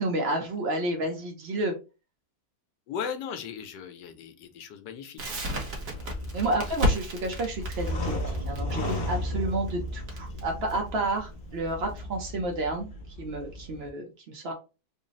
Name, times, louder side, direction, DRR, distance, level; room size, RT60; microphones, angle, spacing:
voice 1, 0.0-1.7 6.3-8.1 8.4-12.9 13.2-14.5, right 2 dB, 80° right, 2 dB, 0.5 m, -30 dB
voice 2, 2.9-5.4 5.9-6.1, left 7 dB, 75° left, 8 dB, 1.3 m, -37 dB
Crackle, 5.2-12.0, equal, 55° right, 1.2 m, -33 dB
sound 1, 5.4-13.9, left 1 dB, 60° left, 0.5 m, -35 dB
3.8 x 2.0 x 3.9 m, 0.30 s
omnidirectional pair, 1.9 m